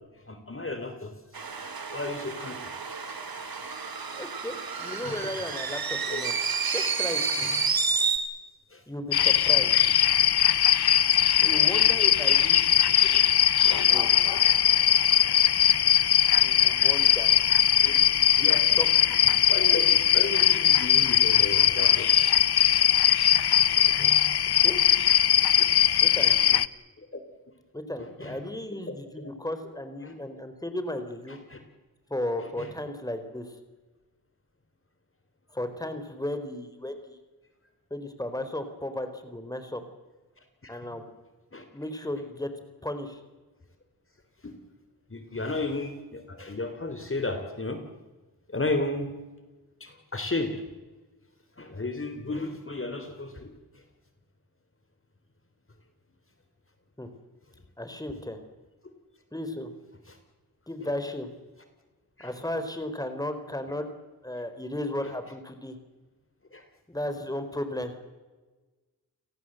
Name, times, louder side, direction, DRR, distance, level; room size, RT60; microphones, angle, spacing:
voice 1, 0.2-1.4 1.9-2.7 3.6-3.7 5.0-5.3 6.1-6.2 7.4-7.6 8.7-8.8 11.4-11.7 17.8-18.0 18.4-18.7 19.2-22.1 22.4-22.5 23.7-24.3 27.0-27.2 28.0-28.5 28.9-29.3 30.0-30.2 31.3-31.6 32.4-32.7 40.6-40.9 41.5-41.7 44.4-44.5 45.1-47.8 48.5-49.1 49.8-50.6 51.6-53.8 58.8-58.9 60.1-60.2 60.8-60.9 62.2-62.3 65.0-65.1 66.5-66.6, left 2 dB, 35° left, 7 dB, 3.5 m, -34 dB
sound 1, 1.3-8.2, right 5 dB, 65° right, 3.4 m, -30 dB
voice 2, 4.1-6.3 6.7-7.5 8.9-9.7 11.4-13.2 13.7-14.1 16.3-17.3 17.8-18.2 18.7-19.2 24.6-24.8 26.0-26.6 27.7-31.4 32.1-33.5 35.5-37.2 37.9-39.8 40.7-41.0 41.7-42.5 42.8-43.2 57.0-57.1 57.8-58.4 59.3-59.7 60.7-61.3 62.2-63.9 64.2-65.8 66.9-68.0, left 1 dB, 10° left, 9 dB, 4.1 m, -35 dB
sound 2, 9.1-26.7, left 10 dB, 75° left, 0.9 m, -20 dB
30.0 x 18.5 x 7.9 m, 1.2 s
cardioid pair, 55°, 39 cm